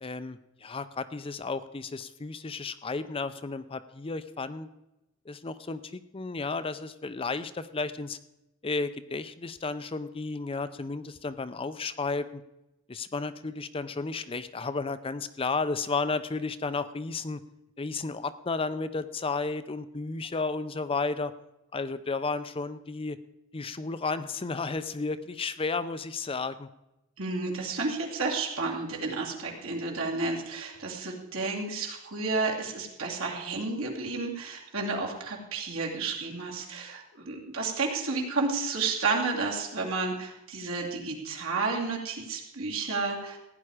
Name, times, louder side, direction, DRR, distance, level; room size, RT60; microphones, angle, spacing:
voice 1, 0.0-4.7 5.3-8.2 8.6-12.4 12.9-17.4 17.8-21.3 21.7-23.2 23.5-26.7, left 4 dB, 25° left, 12 dB, 0.5 m, -33 dB
voice 2, 27.2-43.4, right 3 dB, 75° right, -1 dB, 2.7 m, -31 dB
16.0 x 9.9 x 4.9 m, 0.93 s
head